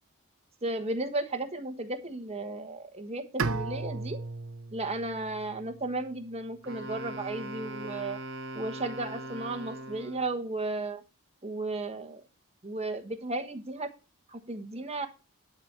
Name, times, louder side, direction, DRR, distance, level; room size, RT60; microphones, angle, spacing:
voice 1, 0.6-4.2 4.7-8.2 8.5-11.0 11.4-12.2 12.6-13.9 14.3-15.1, right 2 dB, 30° right, 6 dB, 1.2 m, -34 dB
Bowed string instrument, 3.4-6.4, right 4 dB, 75° right, 0.8 m, -36 dB
Wind instrument woodwind instrument, 6.6-10.4, right 1 dB, 60° right, 3.0 m, -40 dB
11.5 x 4.4 x 8.0 m, 0.31 s
head